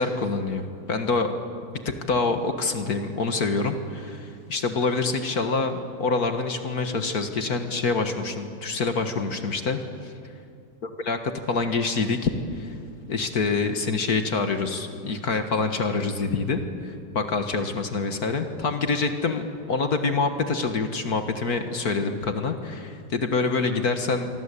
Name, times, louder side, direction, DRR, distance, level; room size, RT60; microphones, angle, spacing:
voice 1, 0.0-1.3 2.1-10.1 10.8-12.8 13.1-24.3, left 4 dB, 55° left, 7 dB, 1.9 m, -26 dB
26.0 x 24.0 x 8.4 m, 2.4 s
omnidirectional pair, 2.1 m